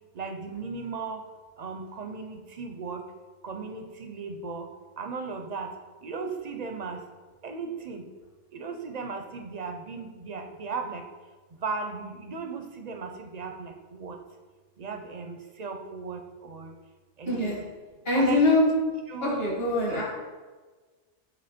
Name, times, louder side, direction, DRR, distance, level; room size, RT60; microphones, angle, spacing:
voice 1, 0.2-1.2 1.6-3.0 3.4-4.7 5.0-5.7 6.0-7.0 7.4-8.0 8.5-11.0 11.6-14.2 14.8-16.7 17.2-17.4 18.1-18.6 19.1-19.4 19.9-20.0, right 4 dB, 50° right, 5 dB, 0.5 m, -36 dB
voice 2, 17.3-17.6 18.1-18.6 19.2-20.0, left 2 dB, 55° left, -4 dB, 2.0 m, -23 dB
8.5 x 3.1 x 4.2 m, 1.4 s
omnidirectional pair, 1.2 m